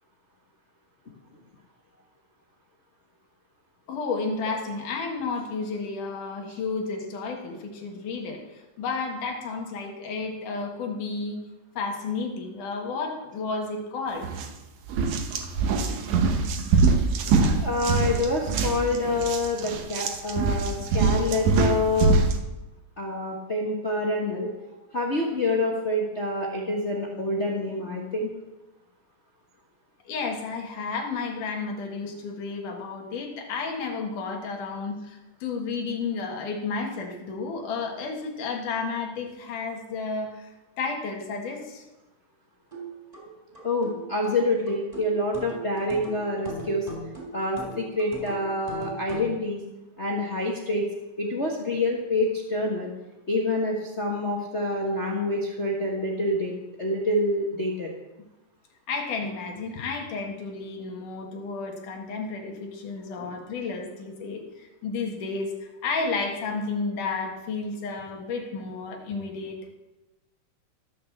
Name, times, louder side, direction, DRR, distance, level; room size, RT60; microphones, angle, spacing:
voice 1, 3.9-8.4 8.8-11.4 11.7-14.3 30.1-40.5 40.8-41.8 58.9-69.6, left 4 dB, 75° left, 3 dB, 3.2 m, -32 dB
sound 1, 14.2-14.5 14.9-22.4, right 4 dB, 70° right, 2.5 m, -23 dB
voice 2, 17.6-22.2 23.0-24.5 24.9-28.3 43.6-46.9 47.3-49.6 50.0-50.9 51.2-52.9 53.3-57.9, left 2 dB, 40° left, -1 dB, 0.9 m, -27 dB
sound 2, 42.7-49.4, right 1 dB, 10° right, 4.1 m, -40 dB
14.0 x 6.6 x 7.3 m, 1.0 s
omnidirectional pair, 3.6 m